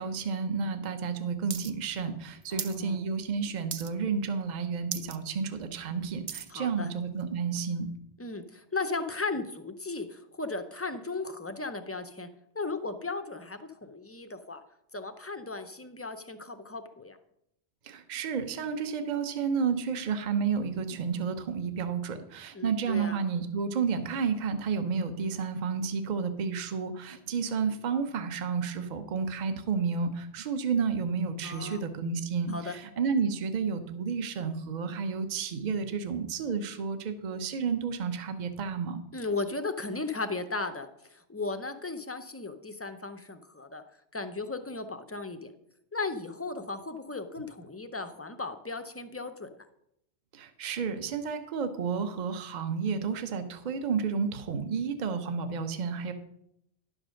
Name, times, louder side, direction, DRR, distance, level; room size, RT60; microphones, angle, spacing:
voice 1, 0.0-7.9 17.8-39.0 50.3-56.1, right 5 dB, 40° right, 9 dB, 0.8 m, -31 dB
sound 1, 1.5-1.7 2.0-2.8 3.2-3.4 3.7-4.1 4.5-4.6 4.8-5.2 5.6-6.5 7.2-7.3, right 8 dB, 60° right, 0.4 m, -38 dB
voice 2, 2.5-3.0 6.5-6.9 8.2-12.3 12.5-14.6 14.9-17.2 22.5-23.2 31.4-31.8 32.5-32.8 39.1-43.8 44.1-45.5 45.9-49.7, left 3 dB, 20° left, 8 dB, 0.3 m, -36 dB
11.0 x 5.0 x 6.4 m, 0.78 s
omnidirectional pair, 1.2 m